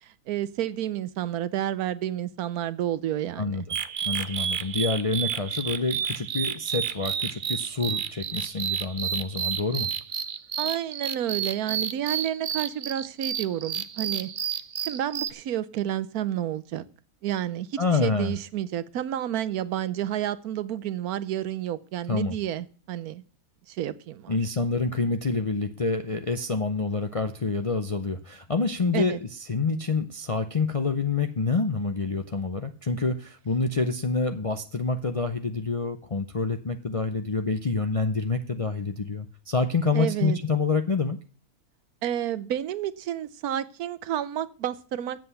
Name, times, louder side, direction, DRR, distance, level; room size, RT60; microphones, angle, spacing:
voice 1, 0.0-3.7 10.6-14.3 14.8-16.8 17.2-23.2 23.7-24.3 28.9-29.2 39.9-40.4 42.0-45.2, right 11 dB, 80° right, 14 dB, 1.2 m, -30 dB
sound 1, 3.7-15.3, right 8 dB, 55° right, 0.6 m, -31 dB
voice 2, 4.0-9.9 17.8-18.4 22.1-22.4 24.3-41.2, left 3 dB, 45° left, 7 dB, 0.4 m, -27 dB
7.8 x 7.5 x 8.2 m, 0.39 s
omnidirectional pair, 1.6 m